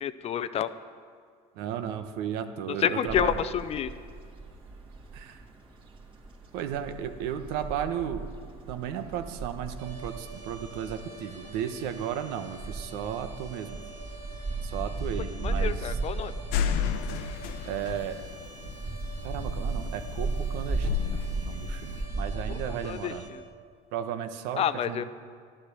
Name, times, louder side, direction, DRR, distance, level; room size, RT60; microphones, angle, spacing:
voice 1, 0.0-0.7 2.7-3.9 15.4-16.3 22.5-22.6 22.8-23.4 24.6-25.0, left 9 dB, 40° left, 14 dB, 0.6 m, -29 dB
voice 2, 1.6-3.3 5.1-5.4 6.5-8.2 8.7-13.8 14.6-16.0 17.6-18.2 19.2-23.2 23.9-25.0, right 9 dB, 70° right, 8 dB, 1.1 m, -34 dB
sound 1, 3.1-22.9, right 3 dB, 30° right, 2.4 m, -36 dB
sound 2, 9.8-23.3, right 2 dB, 90° right, 3.4 m, -48 dB
sound 3, 16.5-22.0, left 9 dB, 70° left, 0.9 m, -32 dB
12.0 x 11.5 x 6.8 m, 2.1 s
supercardioid pair, 115°, 17 cm